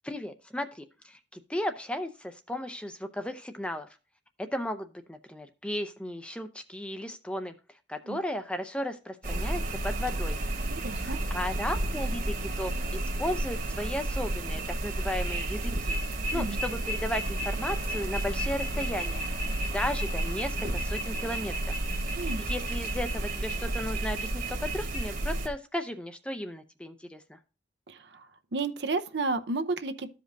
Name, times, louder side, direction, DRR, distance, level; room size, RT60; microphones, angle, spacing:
voice 1, 0.0-3.9 4.4-7.5 7.9-10.4 11.0-16.0 16.3-19.2 19.7-21.7 22.2-27.4, left 1 dB, 5° left, 0.5 m, -35 dB
sound 1, 9.2-25.5, right 1 dB, 50° right, 1.4 m, -31 dB
voice 2, 10.7-11.2 16.3-16.6 22.2-22.4 27.9-28.3 28.5-30.2, right 3 dB, 70° right, 0.7 m, -32 dB
14.0 x 5.1 x 2.6 m
head